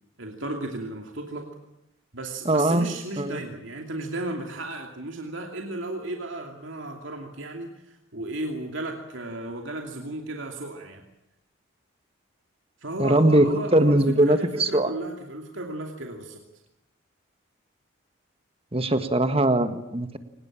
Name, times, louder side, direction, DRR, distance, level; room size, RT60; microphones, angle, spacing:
voice 1, 0.2-1.5 2.1-11.0 12.8-16.4, right 2 dB, 70° right, 2 dB, 2.7 m, -34 dB
voice 2, 2.5-2.9 3.2-3.4 13.0-14.9 18.7-20.2, right 1 dB, 30° right, 10 dB, 1.6 m, -21 dB
23.5 x 20.0 x 8.8 m, 0.84 s
head